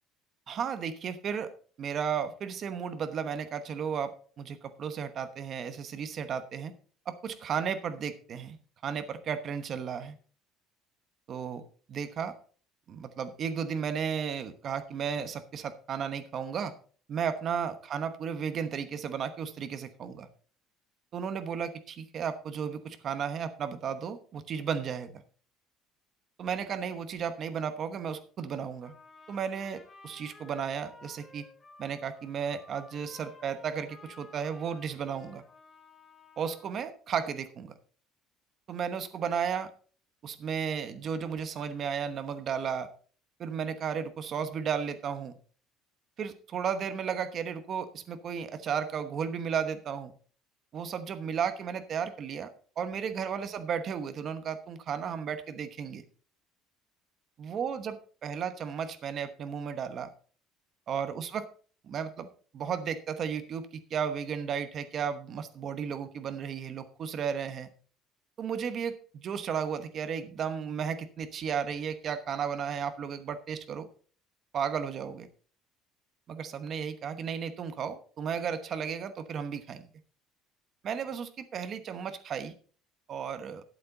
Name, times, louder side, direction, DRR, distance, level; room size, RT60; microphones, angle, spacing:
voice 1, 0.5-1.5 1.8-6.7 7.1-8.6 8.8-10.2 11.3-11.6 11.9-12.4 12.9-16.7 17.1-20.3 21.1-25.2 26.4-28.9 29.3-31.5 31.8-35.4 36.4-37.7 38.7-39.7 40.2-42.9 43.4-45.3 46.2-50.1 50.7-56.0 57.4-60.1 60.9-61.5 61.8-62.3 62.5-67.7 68.4-73.9 74.5-75.3 76.3-79.9 80.8-82.5 83.1-83.6, right 7 dB, 35° right, 10 dB, 1.1 m, -34 dB
Trumpet, 28.8-36.9, left 3 dB, 15° left, 3.2 m, -54 dB
12.0 x 8.6 x 3.8 m, 0.42 s
cardioid pair, 160°, 0 cm